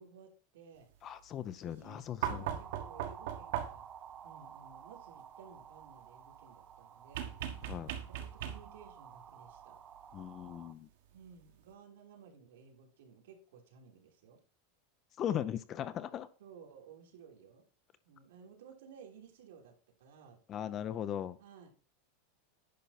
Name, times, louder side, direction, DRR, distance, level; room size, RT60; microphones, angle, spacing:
voice 1, 0.0-0.9 1.6-3.9 4.2-7.4 8.1-9.8 11.1-14.4 15.3-15.5 16.4-17.6 18.0-19.7 20.0-20.4 21.4-21.7, right 6 dB, 85° right, 3.2 m, -56 dB
voice 2, 1.0-2.4 7.6-7.9 10.1-10.9 15.2-16.3 20.5-21.4, left 10 dB, 25° left, 0.5 m, -38 dB
sound 1, 2.2-10.7, right 8 dB, 25° right, 0.6 m, -53 dB
sound 2, 2.2-4.0 7.1-8.9 10.4-10.5, right 10 dB, 70° right, 1.6 m, -38 dB
10.5 x 5.5 x 4.1 m
supercardioid pair, 160°, 0 cm